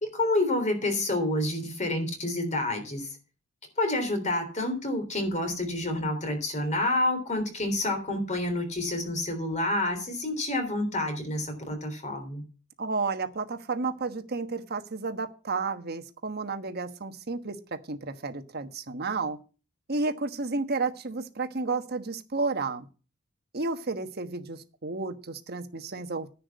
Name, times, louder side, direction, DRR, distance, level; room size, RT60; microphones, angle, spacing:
voice 1, 0.0-3.1 3.8-12.4, left 1 dB, 35° left, 6 dB, 3.5 m, -28 dB
voice 2, 12.8-19.4 19.9-22.9 23.5-26.3, right 3 dB, 50° right, 8 dB, 1.3 m, -32 dB
10.5 x 6.0 x 8.3 m, 0.35 s
head